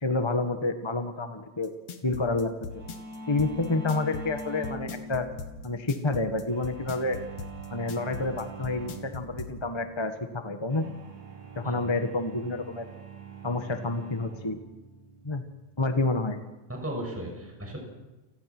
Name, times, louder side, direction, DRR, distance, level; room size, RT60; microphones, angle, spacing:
voice 1, 0.0-1.7 2.0-2.8 3.3-5.3 5.6-7.2 7.7-10.9 11.5-12.9 13.4-14.6 15.2-15.4 15.8-16.4, left 2 dB, 20° left, 7 dB, 0.8 m, -29 dB
sound 1, 1.6-9.5, left 5 dB, 60° left, 3.1 m, -39 dB
sound 2, 2.7-17.2, right 2 dB, 65° right, 6.2 m, -44 dB
voice 2, 16.7-17.8, right 1 dB, 5° right, 0 dB, 6.6 m, -35 dB
29.5 x 19.5 x 6.2 m, 1.1 s
omnidirectional pair, 3.4 m